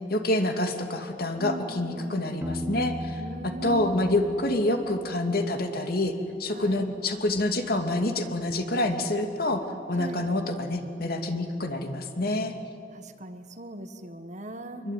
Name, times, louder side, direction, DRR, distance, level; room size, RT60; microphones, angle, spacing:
voice 1, 0.1-3.2 3.6-6.1 6.4-12.5 14.8-14.9, left 1 dB, 55° left, 6 dB, 2.5 m, -27 dB
voice 2, 1.4-2.2 3.2-4.0 6.5-6.9 10.0-10.3 12.9-14.9, right 2 dB, 40° right, 8 dB, 1.6 m, -39 dB
Piano, 2.4-6.1, left 1 dB, 15° right, 1.5 m, -37 dB
26.0 x 23.0 x 9.3 m, 2.5 s
head